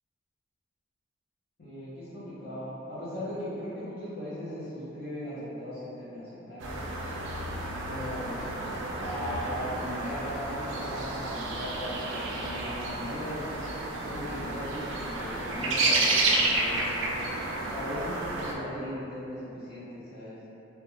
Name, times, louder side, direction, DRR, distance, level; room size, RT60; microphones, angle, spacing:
voice 1, 1.6-6.8 7.8-8.4 8.9-13.8 14.0-17.3 17.7-20.4, left 1 dB, 45° left, -11 dB, 0.5 m, -38 dB
sound 1, 6.6-18.5, right 2 dB, 65° right, 0.3 m, -31 dB
2.2 x 2.2 x 2.9 m, 2.9 s
head